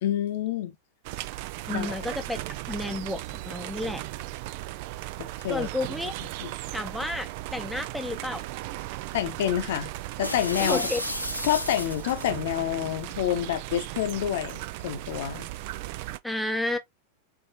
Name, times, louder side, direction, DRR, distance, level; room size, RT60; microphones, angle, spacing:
voice 1, 0.0-0.7 1.7-2.0 5.2-5.7 6.4-6.5 9.1-9.9 10.2-10.9 11.4-15.5, left 11 dB, 55° left, 0.8 m, -28 dB
sound 1, 1.0-16.2, right 17 dB, 45° right, 0.3 m, -37 dB
voice 2, 1.7-2.4 2.7-4.0 5.5-6.1 6.7-8.4 10.6-11.0 16.2-16.8, left 1 dB, ahead, 0.8 m, -31 dB
sound 2, 10.2-12.4, left 1 dB, 90° left, 0.7 m, -33 dB
4.7 x 3.0 x 2.6 m
figure-of-eight pair, 90°, 0 cm